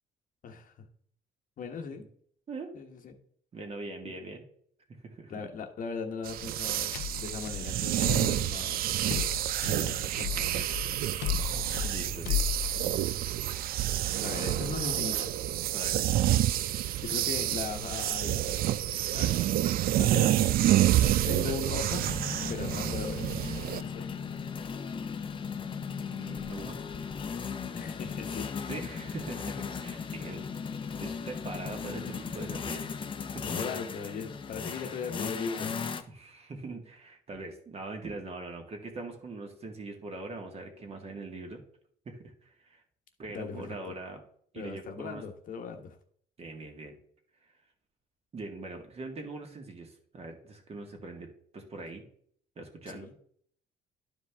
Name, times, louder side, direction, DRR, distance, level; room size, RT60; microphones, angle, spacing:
voice 1, 0.4-0.8 1.6-2.0 2.7-3.1 4.0-4.1 5.3-10.7 13.0-13.2 14.2-15.3 17.0-18.6 19.1-19.4 20.0-20.3 21.3-22.1 22.5-23.2 23.8-24.1 27.7-28.5 33.5-35.7 43.3-43.8 44.5-46.0 52.9-53.1, left 5 dB, 50° left, 5 dB, 1.2 m, -38 dB
voice 2, 3.5-4.4 5.0-5.3 11.8-12.6 14.4-14.6 15.7-16.0 21.4-21.5 26.1-26.8 28.7-30.5 31.0-32.9 33.3-33.5 36.1-41.6 42.1-42.8 43.2-44.2 44.5-45.2 46.4-47.0 48.3-52.0 52.6-53.2, right 3 dB, 35° right, 3 dB, 1.9 m, -42 dB
sound 1, 6.3-23.8, right 13 dB, 60° right, 0.4 m, -28 dB
sound 2, 6.4-13.3, left 11 dB, 80° left, 0.6 m, -36 dB
sound 3, 19.1-19.2 19.6-19.8 21.0-36.0, left 6 dB, 30° left, 0.7 m, -37 dB
11.5 x 5.0 x 3.5 m, 0.62 s
cardioid pair, 110°, 17 cm